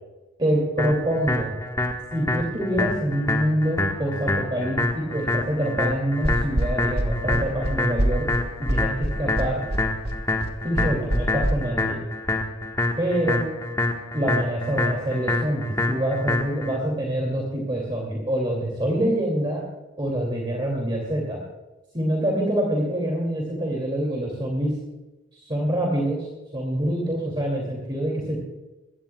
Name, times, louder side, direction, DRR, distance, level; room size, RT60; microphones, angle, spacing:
voice 1, 0.4-1.5 2.1-8.3 8.6-9.6 10.6-12.0 13.0-13.4 14.1-19.6 20.0-21.4 21.9-24.7 25.4-26.3 26.5-28.4, right 1 dB, 25° right, -1 dB, 2.5 m, -25 dB
sound 1, 0.8-16.8, left 2 dB, 15° left, 1.3 m, -27 dB
sound 2, 6.2-11.5, right 1 dB, 50° right, 1.4 m, -25 dB
21.5 x 17.0 x 2.3 m, 1.1 s
head